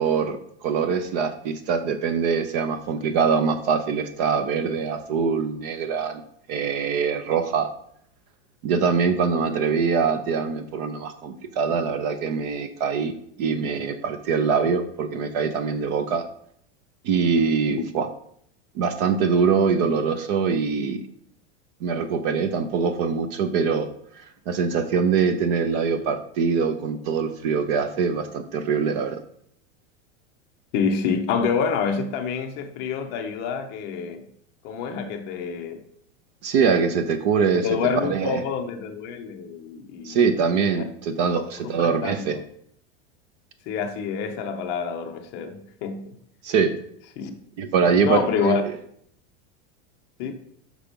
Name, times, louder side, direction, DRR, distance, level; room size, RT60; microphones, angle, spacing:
voice 1, 0.0-6.2 6.5-7.7 8.6-16.2 17.0-18.1 18.7-21.0 21.8-23.9 24.2-29.2 36.4-37.7 38.0-38.4 40.0-42.4 46.4-46.7 47.6-48.7, right 6 dB, 35° right, 0.5 m, -23 dB
voice 2, 30.7-34.2 34.6-35.8 37.6-40.2 40.7-40.9 41.6-42.4 43.7-46.2 47.2-47.3 48.0-48.6 50.2-50.3, left 6 dB, 30° left, 0.7 m, -27 dB
6.1 x 5.7 x 5.1 m
supercardioid pair, 170°, 35 cm